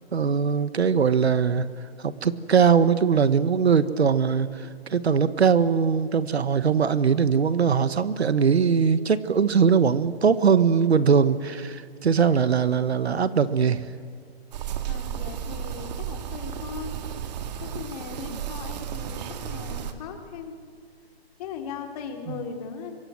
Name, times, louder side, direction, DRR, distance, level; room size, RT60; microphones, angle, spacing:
voice 1, 0.1-1.7 2.0-13.9 18.3-18.4, right 6 dB, 80° right, 14 dB, 1.4 m, -21 dB
sound 1, 14.5-19.9, right 9 dB, 40° right, 2.1 m, -33 dB
voice 2, 14.9-16.9 17.6-20.5 21.4-23.0, left 6 dB, 40° left, 4 dB, 3.6 m, -38 dB
26.0 x 23.5 x 7.7 m, 2.3 s
hypercardioid pair, 145°, 32 cm